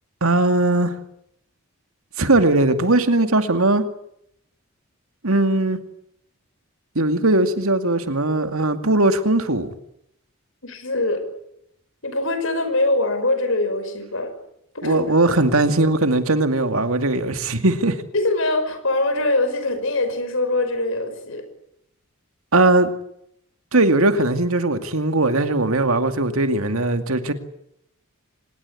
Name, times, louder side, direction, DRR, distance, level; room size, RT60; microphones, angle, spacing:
voice 1, 0.2-0.9 2.2-3.8 5.2-5.8 7.0-9.7 14.8-18.0 22.5-22.9 23.7-27.3, right 2 dB, 75° right, 2.4 m, -19 dB
voice 2, 10.6-11.3 12.0-14.3 14.7-15.0 18.1-21.5, left 2 dB, 60° left, 5.6 m, -23 dB
25.5 x 20.5 x 9.8 m
head